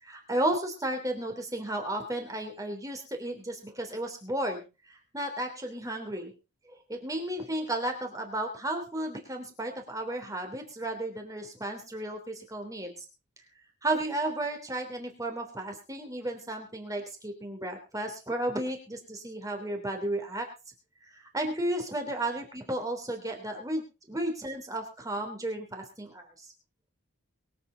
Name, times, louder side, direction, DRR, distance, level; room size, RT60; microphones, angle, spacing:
voice 1, 0.0-6.3 6.9-13.0 13.8-20.5 21.1-26.3, right 1 dB, 15° right, 4 dB, 3.3 m, -33 dB
23.0 x 8.5 x 4.1 m, 0.31 s
head